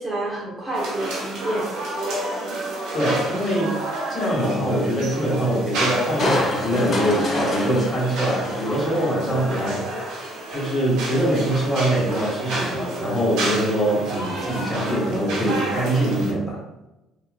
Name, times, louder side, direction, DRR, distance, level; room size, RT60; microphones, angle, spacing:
voice 1, 0.0-1.7 9.2-9.7, right 2 dB, 25° right, -5 dB, 0.6 m, -29 dB
sound 1, 0.7-16.3, right 2 dB, 80° right, 0.7 m, -30 dB
voice 2, 2.9-3.8 4.1-9.8 10.5-16.6, right 1 dB, 25° left, -6 dB, 1.5 m, -23 dB
Crushing, 6.2-9.6 10.0-10.1, left 1 dB, 40° left, 0.6 m, -27 dB
3.0 x 2.2 x 2.2 m, 0.96 s
cardioid pair, 110°, 0 cm